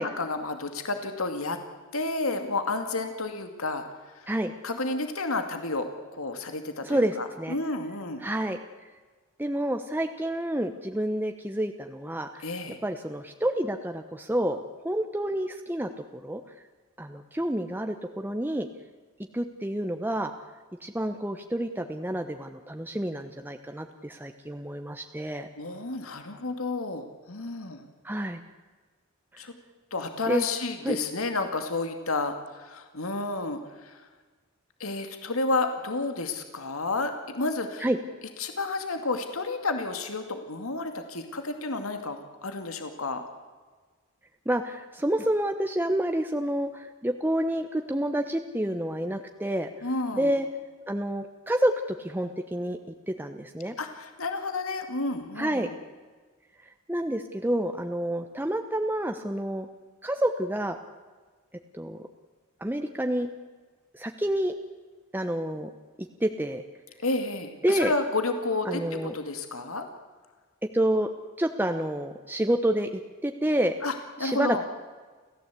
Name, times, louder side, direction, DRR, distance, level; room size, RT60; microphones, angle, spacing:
voice 1, 0.0-1.6 1.9-3.8 4.1-4.3 4.6-5.9 6.1-8.2 12.4-12.8 25.6-27.9 29.4-29.5 29.9-34.0 34.8-37.9 38.4-43.2 49.8-50.3 53.8-55.8 67.0-69.9 73.8-74.6, left 3 dB, 85° left, 6 dB, 2.3 m, -31 dB
voice 2, 6.8-7.5 8.2-8.6 9.4-12.5 12.8-15.9 16.2-16.4 17.0-18.7 19.3-20.3 20.8-25.5 28.0-28.4 29.3-29.4 30.3-30.4 30.8-31.0 37.8-38.0 44.5-49.7 50.1-50.5 50.9-51.7 52.0-52.8 53.1-53.8 55.4-55.7 56.9-59.7 60.0-60.8 61.7-62.0 62.6-63.3 63.9-64.5 65.1-65.7 66.2-66.6 67.6-67.9 68.7-69.1 70.7-71.1 71.4-73.7 74.2-74.6, right 1 dB, 10° right, 5 dB, 1.0 m, -28 dB
29.0 x 15.0 x 8.4 m, 1.4 s
head